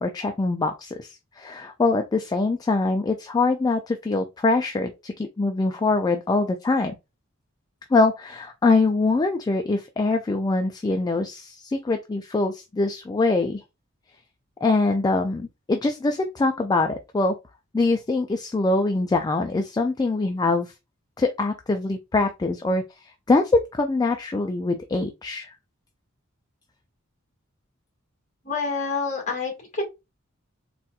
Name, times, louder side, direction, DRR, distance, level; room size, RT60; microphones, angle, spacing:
voice 1, 0.0-6.9 7.9-13.6 14.6-17.3 17.7-20.7 21.2-25.5, left 3 dB, 20° left, 0.3 m, -23 dB
voice 2, 28.4-29.8, left 4 dB, 35° left, 1.6 m, -27 dB
4.1 x 2.3 x 2.3 m
head